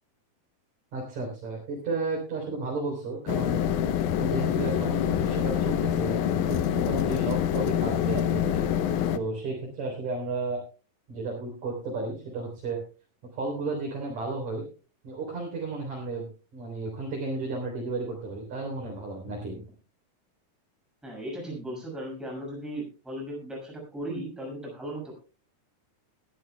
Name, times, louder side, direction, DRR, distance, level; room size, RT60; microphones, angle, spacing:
voice 1, 0.9-3.6 4.1-8.6 9.1-10.6 11.1-12.8 13.3-14.6 15.0-19.6, right 3 dB, 55° right, -2 dB, 5.0 m, -33 dB
sound 1, 3.3-9.2, left 9 dB, 75° left, 2.0 m, -26 dB
voice 2, 21.0-25.1, right 1 dB, ahead, -1 dB, 5.9 m, -37 dB
20.5 x 12.5 x 2.3 m, 0.35 s
omnidirectional pair, 4.1 m